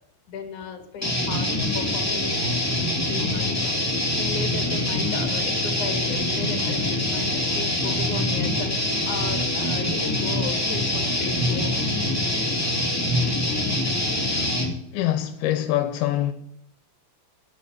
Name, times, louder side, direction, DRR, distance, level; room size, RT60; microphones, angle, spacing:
voice 1, 0.3-2.6 3.1-3.7 4.1-8.7 9.0-11.9, left 6 dB, 55° left, 3.0 m, -35 dB
sound 1, 1.0-14.7, left 1 dB, 5° left, 1.6 m, -24 dB
voice 2, 14.9-16.3, left 13 dB, 85° left, 2.6 m, -24 dB
11.0 x 8.8 x 8.1 m
omnidirectional pair, 4.4 m